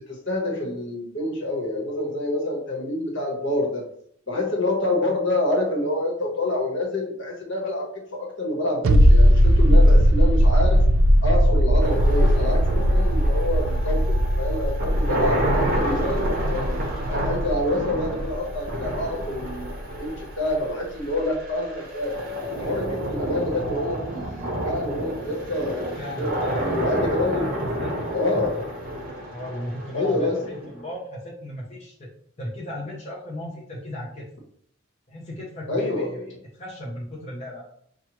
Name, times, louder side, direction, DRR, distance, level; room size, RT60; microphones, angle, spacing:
voice 1, 0.1-3.8 4.3-10.8 11.2-16.7 17.1-22.2 22.5-26.3 26.7-27.6 28.1-28.6 29.9-30.5 35.7-36.3, left 1 dB, 60° left, -1 dB, 1.2 m, -27 dB
sound 1, 8.8-20.2 20.5-20.6, equal, 80° right, 0.4 m, -19 dB
sound 2, 11.8-30.8, right 1 dB, 45° right, 0.8 m, -30 dB
voice 2, 15.0-15.4 26.0-26.7 27.2-28.4 29.3-32.1 32.4-34.3 35.1-37.6, left 1 dB, 30° left, -5 dB, 0.8 m, -36 dB
5.9 x 2.3 x 3.0 m, 0.65 s
head